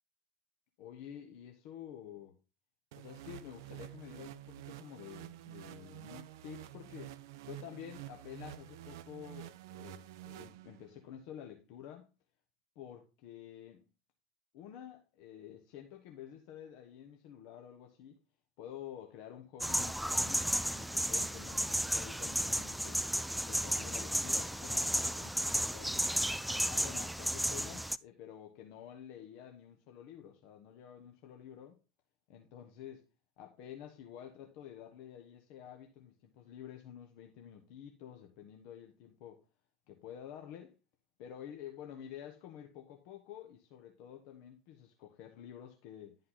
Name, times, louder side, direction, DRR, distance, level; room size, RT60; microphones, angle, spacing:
voice 1, 0.8-2.4 2.9-7.1 7.5-12.1 12.7-13.8 14.5-18.2 18.6-23.0 23.4-26.1 26.6-31.7 32.3-33.1 33.4-39.4 39.9-40.7 41.2-46.2, left 10 dB, 55° left, 1.1 m, -50 dB
sound 1, 2.9-11.1, right 14 dB, 60° right, 0.5 m, -49 dB
sound 2, 19.6-28.0, equal, ahead, 0.3 m, -33 dB
11.0 x 5.6 x 3.9 m
figure-of-eight pair, 75°, 2 cm